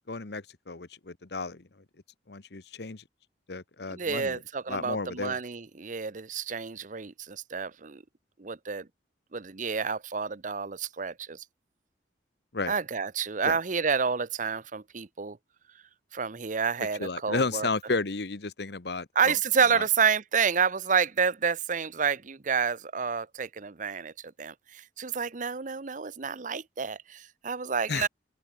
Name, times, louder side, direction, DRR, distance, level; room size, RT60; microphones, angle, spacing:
voice 1, 0.1-1.8 2.3-3.0 3.5-4.4 4.7-5.4 12.5-12.7 13.4-13.6 17.0-19.4 19.7-19.8 27.9-28.1, left 3 dB, 65° left, 1.2 m, -33 dB
voice 2, 3.9-8.0 8.4-8.9 9.3-11.4 12.7-15.4 16.1-17.7 19.2-28.1, right 6 dB, 45° right, 0.8 m, -29 dB
open air
head